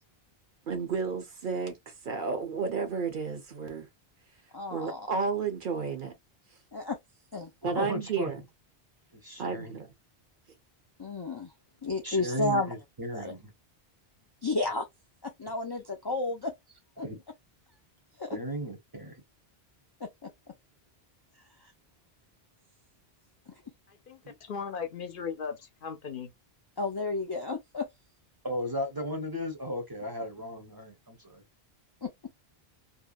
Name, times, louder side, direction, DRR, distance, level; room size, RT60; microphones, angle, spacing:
voice 1, 0.7-3.9 4.7-6.1 7.6-8.4 9.4-9.9, right 5 dB, 55° right, 0.9 m, -32 dB
voice 2, 4.5-5.1 6.7-7.0 7.3-7.5 11.0-11.5 11.8-12.7 13.1-13.3 14.4-14.9 15.2-16.5 17.0-17.1 18.2-18.4 20.0-20.3 21.6-21.7 23.5-23.6 26.8-27.9 32.0-32.1, left 3 dB, 40° left, 0.4 m, -32 dB
voice 3, 7.6-8.3 9.2-9.7 12.0-13.5 17.0-17.2 18.3-19.2 24.2-24.3 28.4-31.4, equal, 25° right, 0.7 m, -35 dB
voice 4, 23.9-26.3, left 6 dB, 60° left, 0.8 m, -38 dB
2.7 x 2.1 x 2.3 m
omnidirectional pair, 1.1 m